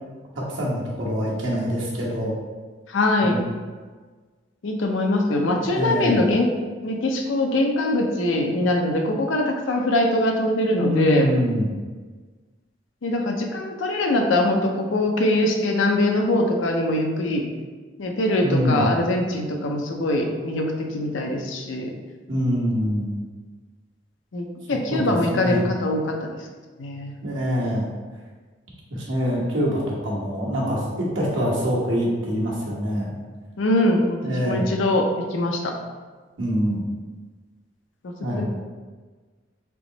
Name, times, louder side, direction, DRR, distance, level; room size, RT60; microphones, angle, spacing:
voice 1, 0.4-2.3 3.2-3.4 5.6-6.2 10.7-11.7 18.4-18.9 22.3-23.2 24.9-25.7 27.2-27.9 29.1-33.1 34.2-34.7 36.4-36.8 38.2-38.5, equal, 75° right, -5 dB, 1.2 m, -25 dB
voice 2, 2.9-3.5 4.6-6.6 6.8-11.3 13.0-17.5 18.0-21.9 24.3-26.2 26.8-27.1 33.6-35.8 38.4-38.5, left 1 dB, 75° left, 2 dB, 0.6 m, -22 dB
3.5 x 3.0 x 3.8 m, 1.4 s
head